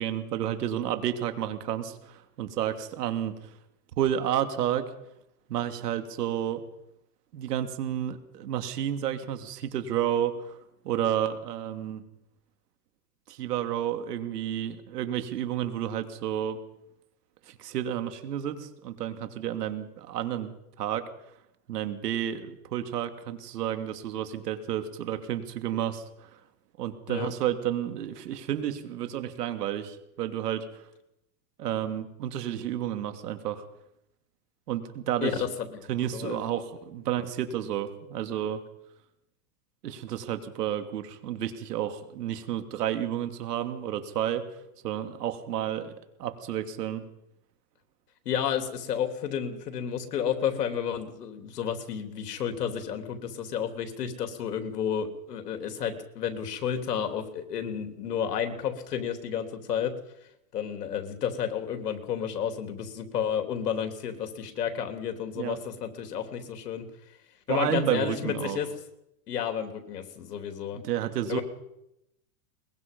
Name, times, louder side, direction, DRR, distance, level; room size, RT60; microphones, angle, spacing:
voice 1, 0.0-3.4 4.0-4.9 5.5-6.6 7.3-10.6 10.8-12.0 13.3-16.6 17.5-21.0 21.7-26.0 26.8-30.6 31.6-33.6 34.7-35.3 35.9-38.6 39.8-44.4 44.8-45.9 46.2-47.0 65.4-65.6 67.5-68.6 70.7-71.4, right 10 dB, 80° right, 8 dB, 2.8 m, -31 dB
voice 2, 35.2-36.6 48.3-59.9 60.5-66.9 67.5-68.7 69.3-70.8 71.3-71.4, left 8 dB, 90° left, 7 dB, 3.5 m, -31 dB
22.0 x 21.5 x 5.4 m, 0.83 s
supercardioid pair, 135°, 47 cm